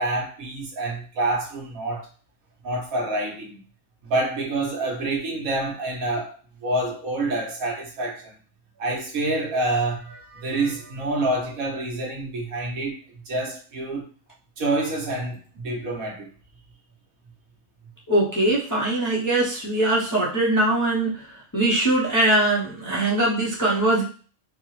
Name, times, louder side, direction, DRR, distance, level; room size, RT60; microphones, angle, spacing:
voice 1, 0.0-2.1 2.6-3.6 4.0-8.3 8.8-13.0 13.2-14.0 14.6-16.3, right 2 dB, 70° right, 1.5 m, -27 dB
voice 2, 18.1-21.3 21.5-24.0, right 1 dB, 20° left, 0.5 m, -21 dB
4.4 x 2.1 x 3.1 m
omnidirectional pair, 1.5 m